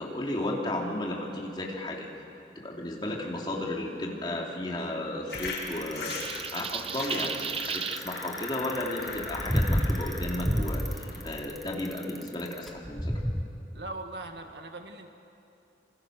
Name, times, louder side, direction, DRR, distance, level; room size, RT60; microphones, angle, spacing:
voice 1, 0.0-2.1 2.5-13.1, left 1 dB, 25° left, -1 dB, 3.0 m, -34 dB
sound 1, 5.3-11.4, left 3 dB, 75° left, 6.7 m, -40 dB
Bicycle, 5.3-13.4, equal, ahead, 1.0 m, -30 dB
sound 2, 6.1-8.0, right 6 dB, 30° right, 0.7 m, -34 dB
voice 2, 13.7-15.1, right 2 dB, 75° right, 5 dB, 1.8 m, -40 dB
27.0 x 26.5 x 6.5 m, 2.8 s
head